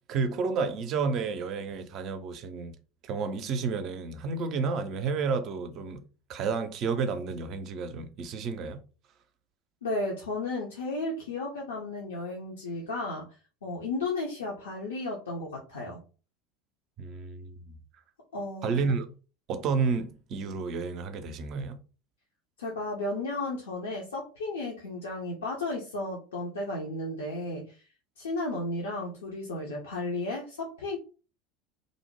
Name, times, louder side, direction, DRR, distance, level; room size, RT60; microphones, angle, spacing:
voice 1, 0.1-2.7 3.0-6.0 6.3-8.8 17.0-17.7 18.6-19.1 19.5-21.8, right 5 dB, 45° right, 0.4 m, -31 dB
voice 2, 9.8-13.3 13.6-16.0 18.3-18.9 22.6-27.8 28.2-31.0, left 2 dB, 70° left, 0.5 m, -34 dB
2.5 x 2.0 x 3.0 m
figure-of-eight pair, 70°, 0 cm